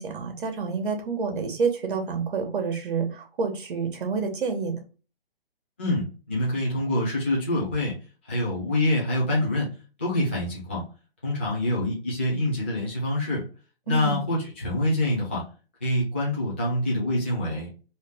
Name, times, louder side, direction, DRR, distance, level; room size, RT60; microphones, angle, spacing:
voice 1, 0.0-4.8 13.9-14.2, right 5 dB, 55° right, 5 dB, 1.2 m, -28 dB
voice 2, 5.8-8.0 8.2-9.7 10.0-10.8 11.2-13.4 13.9-15.4 15.8-17.8, left 1 dB, 10° left, -5 dB, 0.4 m, -26 dB
3.2 x 2.7 x 3.3 m, 0.35 s
hypercardioid pair, 155°, 31 cm